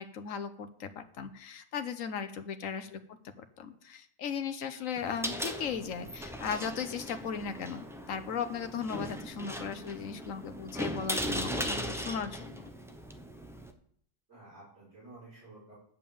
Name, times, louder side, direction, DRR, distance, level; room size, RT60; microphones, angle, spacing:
voice 1, 0.0-3.0 3.4-12.7, left 6 dB, 90° left, 8 dB, 1.3 m, -37 dB
voice 2, 2.6-3.0 5.0-5.1 14.3-15.7, right 2 dB, 60° right, -9 dB, 7.1 m, -53 dB
sound 1, 5.0-13.7, equal, ahead, 0.9 m, -38 dB
11.5 x 5.5 x 8.6 m, 0.64 s
omnidirectional pair, 1.3 m